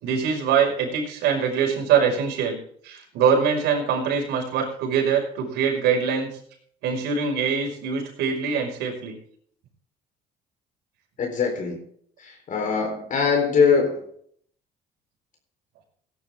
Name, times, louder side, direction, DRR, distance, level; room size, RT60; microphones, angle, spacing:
voice 1, 0.0-6.3 6.8-9.2, right 6 dB, 85° right, 0 dB, 5.4 m, -23 dB
voice 2, 11.2-11.8 12.2-14.0, left 5 dB, 50° left, 2 dB, 4.0 m, -22 dB
18.0 x 10.5 x 3.6 m, 0.62 s
cardioid pair, 110°, 17 cm